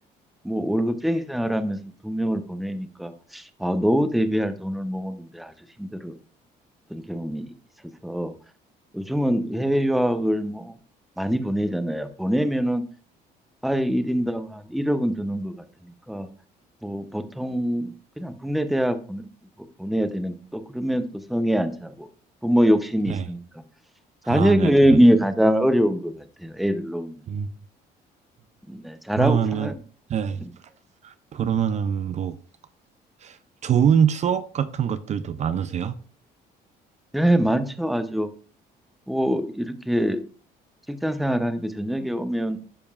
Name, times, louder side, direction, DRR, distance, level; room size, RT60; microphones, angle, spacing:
voice 1, 0.4-1.8 2.0-5.5 5.8-6.1 6.9-7.5 8.0-8.3 8.9-10.7 11.2-12.8 13.6-15.6 16.1-16.3 16.8-19.2 19.8-21.0 21.3-22.1 22.4-23.4 24.3-26.1 26.4-27.1 28.7-29.7 37.1-38.3 39.1-40.2 40.9-42.6, equal, ahead, 0.6 m, -23 dB
voice 2, 24.2-25.0 27.3-27.5 29.2-29.7 30.1-30.4 31.0-32.4 33.2-36.0, right 8 dB, 45° right, 0.5 m, -24 dB
12.0 x 5.2 x 2.4 m
cardioid pair, 110°, 17 cm